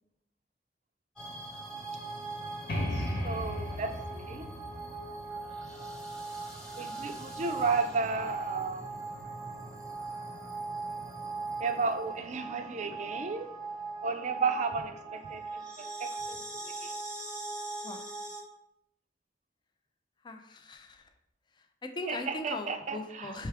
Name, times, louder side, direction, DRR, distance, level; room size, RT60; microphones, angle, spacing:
sound 1, 1.2-18.4, right 3 dB, 5° left, 1.0 m, -40 dB
sound 2, 2.7-6.3, left 1 dB, 60° left, 1.0 m, -36 dB
voice 1, 2.9-4.5 6.8-9.0 11.5-13.5 14.0-16.9 22.1-23.3, right 4 dB, 40° right, 7 dB, 0.4 m, -33 dB
voice 2, 20.2-21.1 21.8-23.5, left 2 dB, 25° left, 7 dB, 0.4 m, -39 dB
4.7 x 3.2 x 3.4 m, 0.77 s
head